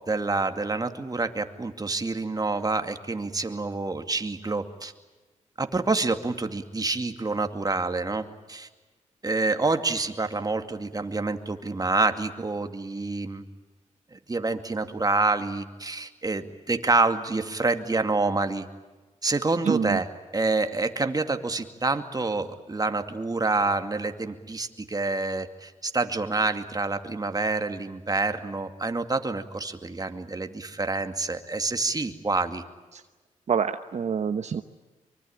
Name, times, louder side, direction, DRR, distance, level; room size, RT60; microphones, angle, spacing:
voice 1, 0.1-4.9 5.6-8.7 9.2-13.4 14.1-18.7 19.2-20.1 20.3-32.6, right 3 dB, 30° right, 7 dB, 2.4 m, -27 dB
voice 2, 19.6-20.0 32.9-33.0 33.5-34.6, right 6 dB, 60° right, 8 dB, 1.0 m, -26 dB
24.5 x 24.0 x 8.8 m, 1.2 s
cardioid pair, 70°, 13 cm